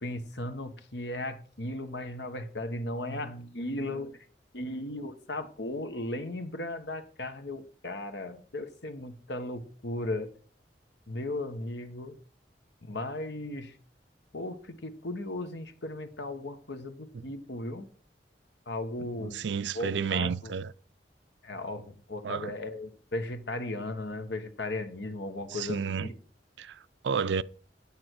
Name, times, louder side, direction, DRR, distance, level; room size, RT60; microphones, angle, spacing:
voice 1, 0.0-4.2 4.5-10.3 11.1-12.2 12.8-13.8 14.3-17.9 18.7-19.4 19.7-20.5 21.4-26.1, left 2 dB, 80° left, 1.3 m, -36 dB
voice 2, 19.2-20.7 22.2-22.5 25.5-26.1 26.6-27.4, right 6 dB, 90° right, 0.5 m, -31 dB
9.5 x 8.8 x 4.7 m
head